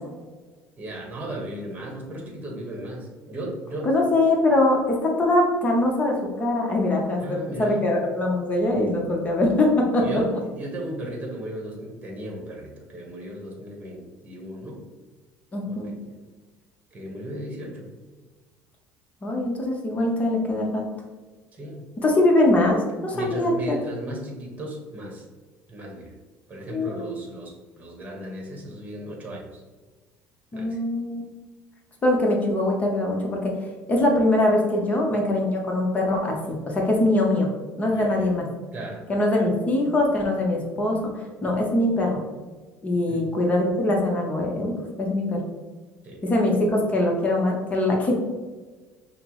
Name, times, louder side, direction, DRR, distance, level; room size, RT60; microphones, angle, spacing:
voice 1, 0.8-3.9 7.2-7.9 10.0-14.8 15.6-16.2 16.9-17.9 21.5-21.8 23.1-25.3 25.7-26.1 26.5-29.6 30.5-30.8 37.9-38.3 38.7-39.0 43.1-43.3 46.0-46.2, right 1 dB, 25° right, 0 dB, 1.0 m, -36 dB
voice 2, 3.8-10.1 15.5-15.9 19.2-20.8 22.0-22.8 23.0-23.5 26.7-27.1 30.5-31.3 32.0-33.5 33.9-37.5 37.8-38.5 39.1-41.0 41.4-42.2 42.8-45.4 46.2-48.1, left 1 dB, 25° left, 0 dB, 0.8 m, -22 dB
5.7 x 2.0 x 3.0 m, 1.3 s
cardioid pair, 110°, 5 cm